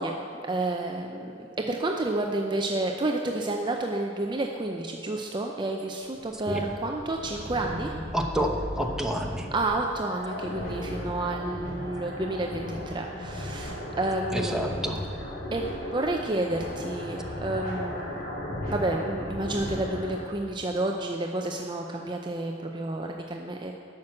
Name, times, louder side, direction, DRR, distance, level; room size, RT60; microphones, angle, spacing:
voice 1, 0.0-1.3 1.7-8.0 9.3-14.8 15.5-18.2 18.7-23.7, right 2 dB, 25° right, 2 dB, 0.5 m, -30 dB
sound 1, 6.2-20.2, left 1 dB, 50° left, 3.0 m, -36 dB
voice 2, 8.1-9.5 14.3-15.0, equal, 5° right, 1 dB, 0.9 m, -29 dB
12.0 x 6.0 x 7.6 m, 2.4 s
head